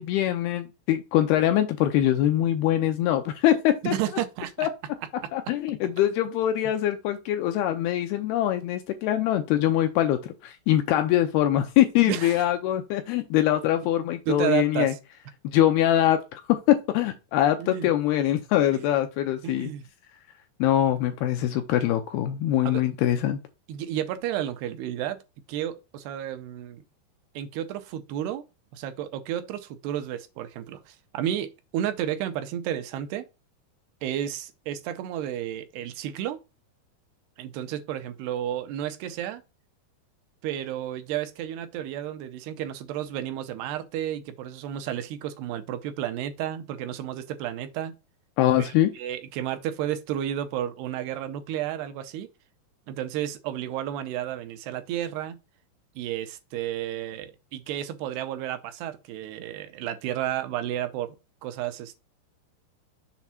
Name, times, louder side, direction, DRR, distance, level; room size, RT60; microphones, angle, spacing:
voice 1, 0.0-3.9 4.6-4.7 5.3-14.9 15.4-16.4 16.7-19.7 20.6-23.4 48.4-48.9, left 12 dB, 80° left, 2.4 m, -23 dB
voice 2, 3.8-4.7 12.1-12.5 14.3-15.0 17.6-17.9 19.4-19.9 22.6-22.8 23.7-25.2 25.5-26.8 27.4-28.4 28.7-33.2 34.0-36.4 37.4-39.4 40.4-47.9 48.6-52.3 52.9-55.4 56.0-61.2 61.4-62.0, right 11 dB, 75° right, 2.6 m, -32 dB
7.3 x 3.2 x 5.7 m
omnidirectional pair, 5.0 m